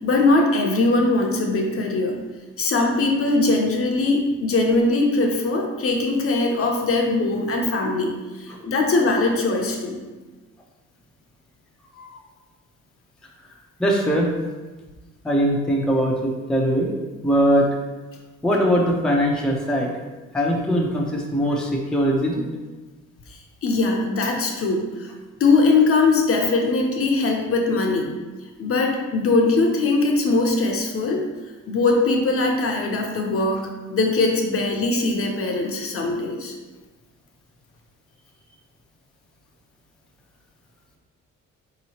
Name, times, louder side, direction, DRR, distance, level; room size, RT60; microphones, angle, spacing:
voice 1, 0.0-2.2 2.6-10.0 23.6-25.1 25.4-28.1 28.6-31.2 31.7-36.5, left 3 dB, 50° left, 1 dB, 0.7 m, -21 dB
voice 2, 13.8-14.3 15.2-16.9 17.2-17.7 18.4-19.9 20.3-22.4, equal, ahead, -1 dB, 0.5 m, -21 dB
3.9 x 2.9 x 2.8 m, 1.2 s
cardioid pair, 90°, 30 cm